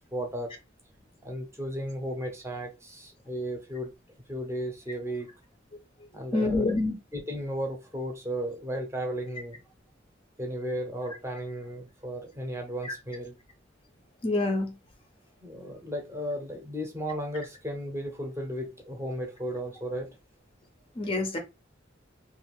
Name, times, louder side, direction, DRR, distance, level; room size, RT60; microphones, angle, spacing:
voice 1, 0.1-0.6 1.2-3.9 4.3-5.3 6.1-6.8 7.1-9.6 10.4-13.3 15.4-20.1, equal, 15° right, 0.7 m, -34 dB
voice 2, 6.3-6.9 14.2-14.7 21.0-21.4, left 2 dB, 30° left, 0.5 m, -26 dB
2.6 x 2.4 x 3.0 m
head